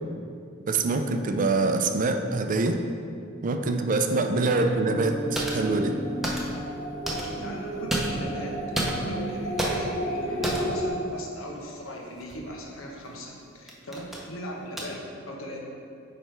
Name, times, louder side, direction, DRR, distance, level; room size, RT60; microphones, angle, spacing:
voice 1, 0.7-2.8 3.4-6.0, right 3 dB, 40° right, 6 dB, 0.4 m, -25 dB
sound 1, 4.1-10.9, equal, 25° left, 1.2 m, -34 dB
sound 2, 4.8-9.1, right 2 dB, 65° left, 1.7 m, -38 dB
sound 3, 5.3-5.7 6.2-6.7 7.0-7.5 7.9-8.4 8.7-9.2 9.6-10.0 10.4-10.8 12.2-12.3 13.1-13.3 13.7-14.3 14.8-14.9, right 1 dB, ahead, 0.8 m, -30 dB
voice 2, 7.1-8.6 9.0-15.6, equal, 80° left, -1 dB, 1.1 m, -39 dB
9.1 x 3.3 x 4.5 m, 2.4 s
head